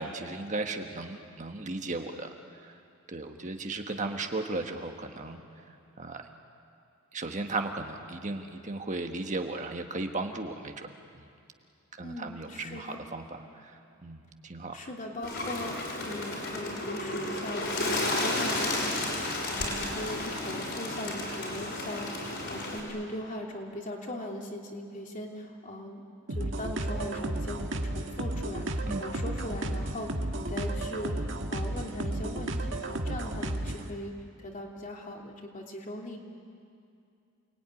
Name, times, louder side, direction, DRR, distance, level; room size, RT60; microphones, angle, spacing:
voice 1, 0.0-2.3 2.6-2.7 3.1-5.4 6.0-6.2 7.1-10.9 11.2-11.3 11.9-14.8 28.9-29.0, right 2 dB, 35° right, 4 dB, 1.5 m, -36 dB
voice 2, 12.0-13.0 14.7-26.0 26.3-30.1 30.4-34.1 34.4-36.2, left 1 dB, 35° left, 0 dB, 3.0 m, -39 dB
Bird, 15.2-22.8, left 2 dB, 55° left, 6.2 m, -32 dB
sound 1, 26.3-33.9, right 1 dB, 60° right, 1.9 m, -33 dB
29.0 x 20.5 x 9.8 m, 2.5 s
head